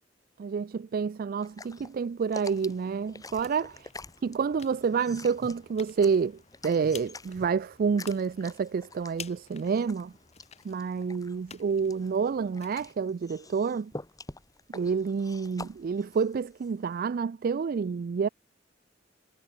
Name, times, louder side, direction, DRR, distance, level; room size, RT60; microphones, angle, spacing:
voice 1, 0.4-3.7 4.2-10.1 10.6-13.9 14.7-18.3, right 5 dB, 50° right, 0.3 m, -28 dB
sound 1, 1.4-17.0, left 2 dB, 20° left, 2.7 m, -47 dB
sound 2, 2.5-12.9, left 7 dB, 35° left, 1.4 m, -51 dB
head